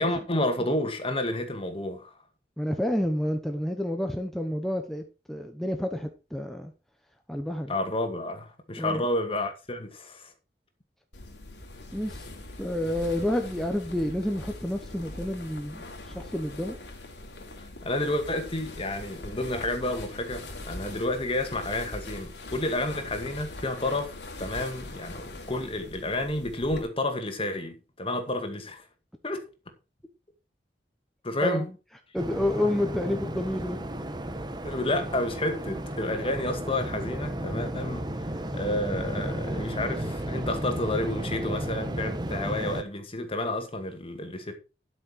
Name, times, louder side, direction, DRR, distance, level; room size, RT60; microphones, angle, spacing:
voice 1, 0.0-2.1 7.7-10.3 17.8-28.8 29.2-29.4 31.2-31.7 34.6-38.1 38.5-44.6, left 1 dB, 35° left, 2.1 m, -30 dB
voice 2, 2.6-6.7 7.3-7.7 8.8-9.0 11.9-12.3 12.6-16.7 31.4-31.7 32.1-33.8, left 1 dB, ahead, 1.1 m, -29 dB
sound 1, 11.1-26.8, left 2 dB, 90° left, 3.0 m, -42 dB
Waves surf, 32.2-42.8, right 1 dB, 25° right, 1.2 m, -33 dB
12.5 x 6.6 x 4.6 m
head